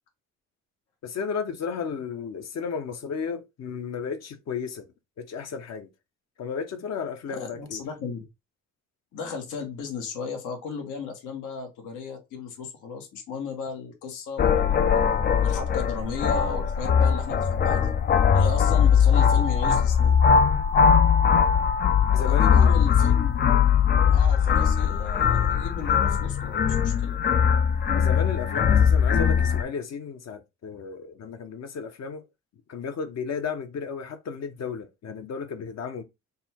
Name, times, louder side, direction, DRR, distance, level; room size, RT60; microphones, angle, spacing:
voice 1, 1.0-5.9 6.4-7.8 22.1-22.9 28.0-32.3 32.7-36.0, left 6 dB, 60° left, 0.9 m, -33 dB
voice 2, 7.3-8.2 9.1-14.8 15.4-17.9 18.3-20.2 22.1-23.6 24.0-27.2, left 5 dB, 85° left, 1.3 m, -35 dB
sound 1, 14.4-29.6, left 7 dB, 35° left, 0.4 m, -20 dB
4.1 x 2.3 x 4.2 m
cardioid pair, 90°, 30 cm